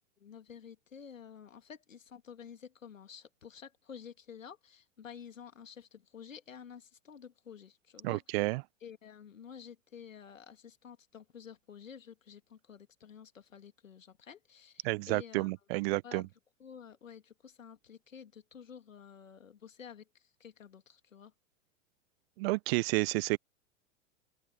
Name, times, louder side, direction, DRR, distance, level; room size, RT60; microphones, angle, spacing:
voice 1, 0.2-8.5 8.8-15.5 16.0-16.3 16.6-21.3, left 7 dB, 85° left, 2.4 m, -51 dB
voice 2, 8.0-8.6 14.8-16.3 22.4-23.4, right 23 dB, 50° right, 1.1 m, -31 dB
open air
hypercardioid pair, 95°, 38 cm